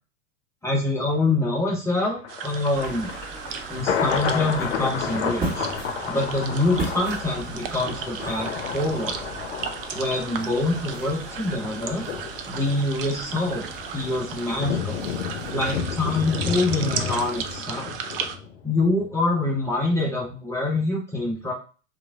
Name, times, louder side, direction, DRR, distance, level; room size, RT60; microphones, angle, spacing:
voice 1, 0.6-3.1 3.7-5.7 6.1-9.2 9.9-12.1 12.5-13.6 13.9-15.0 15.5-17.9 18.6-21.5, left 2 dB, 5° left, -3 dB, 0.5 m, -25 dB
Thunder, 1.9-19.1 19.4-19.5, left 7 dB, 60° left, 0.6 m, -32 dB
sound 1, 2.3-18.4, right 7 dB, 45° right, 0.5 m, -35 dB
sound 2, 2.7-17.6, right 2 dB, 25° right, 1.7 m, -39 dB
3.0 x 2.5 x 3.4 m, 0.36 s
figure-of-eight pair, 95°, 38 cm